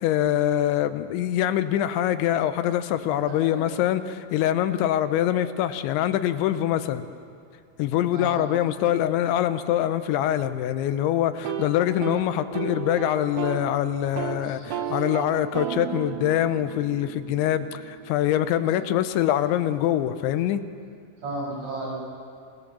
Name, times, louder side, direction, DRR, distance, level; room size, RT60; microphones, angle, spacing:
voice 1, 0.0-7.1 7.8-20.6, left 11 dB, 85° left, 11 dB, 3.2 m, -24 dB
voice 2, 3.3-3.6 8.1-8.6 14.4-15.0 18.6-18.7 21.2-21.9, right 2 dB, 40° right, -5 dB, 8.8 m, -35 dB
sound 1, 11.3-13.7 14.0-14.4 14.7-18.6, right 8 dB, 85° right, 3.8 m, -33 dB
27.0 x 19.0 x 6.9 m, 2.4 s
omnidirectional pair, 5.2 m